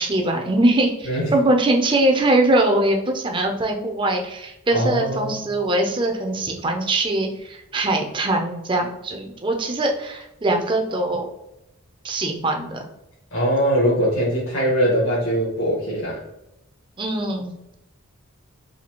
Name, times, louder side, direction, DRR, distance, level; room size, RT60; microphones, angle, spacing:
voice 1, 0.0-11.3 12.0-12.9 17.0-17.7, right 1 dB, 20° right, 2 dB, 0.5 m, -22 dB
voice 2, 4.7-5.5 13.3-16.2, equal, 65° left, -7 dB, 1.3 m, -21 dB
4.2 x 2.7 x 2.9 m, 0.89 s
head